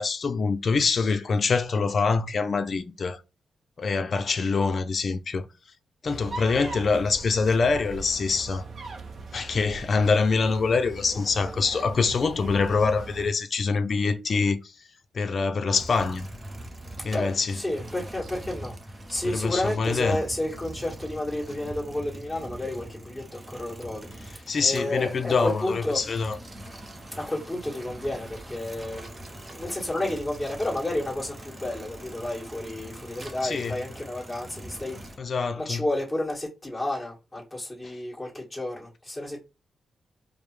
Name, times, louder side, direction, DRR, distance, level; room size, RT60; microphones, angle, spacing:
voice 1, 0.0-3.2 3.8-5.5 6.0-8.7 9.3-14.6 15.1-16.3 17.0-17.6 19.2-20.2 24.5-26.4 33.4-33.8 35.2-35.9, left 4 dB, 45° left, 0.5 m, -25 dB
Baby Rhino, 6.0-13.3, right 3 dB, 50° right, 0.6 m, -40 dB
sound 1, 15.7-35.2, right 1 dB, 20° right, 0.8 m, -42 dB
voice 2, 17.1-26.0 27.2-35.0 35.6-39.4, left 1 dB, 5° left, 1.8 m, -31 dB
5.0 x 2.1 x 3.2 m
wide cardioid pair, 130°, 0 cm